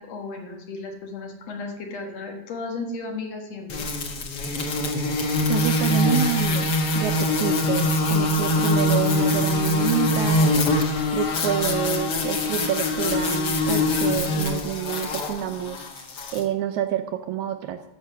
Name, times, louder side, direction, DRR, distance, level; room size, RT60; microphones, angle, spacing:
voice 1, 0.0-3.9 7.4-7.7, left 3 dB, 60° left, 2 dB, 2.4 m, -35 dB
sound 1, 3.7-16.4, left 2 dB, 85° left, 0.9 m, -23 dB
voice 2, 5.5-10.8 11.1-17.9, right 11 dB, 80° right, 7 dB, 1.8 m, -28 dB
13.5 x 6.1 x 5.6 m, 0.93 s
omnidirectional pair, 3.7 m